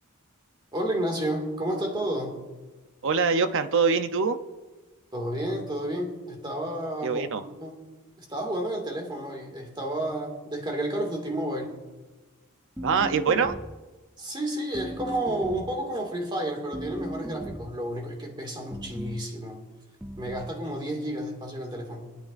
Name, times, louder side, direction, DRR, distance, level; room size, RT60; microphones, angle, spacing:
voice 1, 0.7-2.4 5.1-7.3 7.6-7.8 8.2-11.8 14.2-19.6 20.2-22.2, right 1 dB, 20° right, 2 dB, 2.0 m, -31 dB
voice 2, 3.0-4.4 7.0-7.4 12.8-13.5, right 5 dB, 60° right, 9 dB, 0.7 m, -24 dB
sound 1, 12.8-13.9 14.7-15.8 16.7-17.8 18.7-19.3 20.0-20.6, right 1 dB, 5° right, 0.3 m, -37 dB
25.0 x 9.2 x 2.5 m, 1.2 s
head